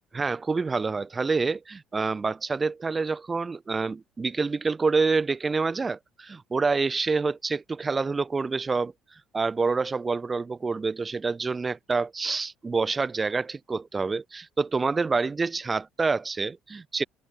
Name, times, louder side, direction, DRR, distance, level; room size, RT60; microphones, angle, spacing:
voice 1, 0.1-8.9 9.3-17.0, right 4 dB, 30° right, 1.4 m, -27 dB
open air
hypercardioid pair, 60°, 0 cm